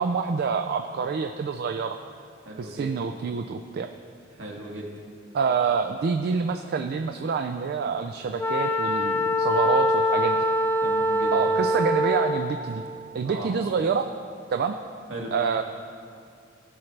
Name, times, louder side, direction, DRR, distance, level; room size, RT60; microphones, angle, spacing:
voice 1, 0.0-2.0 2.6-3.9 5.3-10.4 11.3-12.8 13.1-14.1 14.5-14.8 15.3-15.6, right 5 dB, 50° right, 6 dB, 0.3 m, -27 dB
voice 2, 2.4-2.9 4.4-4.9 10.8-11.4 13.2-13.5 15.1-15.3, right 1 dB, 70° right, -2 dB, 1.8 m, -36 dB
Wind instrument woodwind instrument, 8.4-12.5, equal, 10° left, 0.5 m, -23 dB
16.5 x 5.9 x 3.3 m, 2.4 s
head